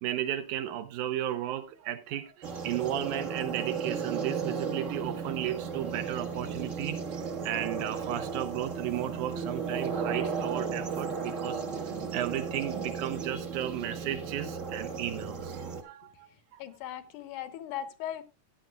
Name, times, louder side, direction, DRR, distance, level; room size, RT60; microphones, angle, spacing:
voice 1, 0.0-7.0 7.4-11.6 12.1-16.3 16.5-16.6, right 12 dB, 80° right, 2.4 m, -34 dB
sound 1, 2.4-15.8, right 5 dB, 50° right, 0.9 m, -35 dB
voice 2, 16.6-18.3, left 10 dB, 80° left, 2.4 m, -38 dB
15.5 x 10.5 x 2.3 m
omnidirectional pair, 3.5 m